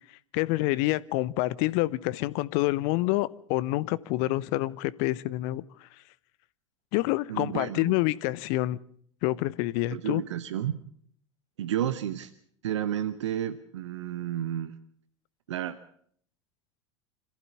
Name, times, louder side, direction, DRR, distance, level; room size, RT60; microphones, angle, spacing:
voice 1, 0.3-5.6 6.9-8.8 9.2-10.2, left 18 dB, 45° left, 20 dB, 0.8 m, -27 dB
voice 2, 7.3-8.0 9.9-10.8 11.6-12.3 12.6-14.8 15.5-15.8, right 11 dB, 65° right, 13 dB, 1.0 m, -31 dB
26.0 x 15.0 x 7.0 m, 0.63 s
figure-of-eight pair, 80°, 16 cm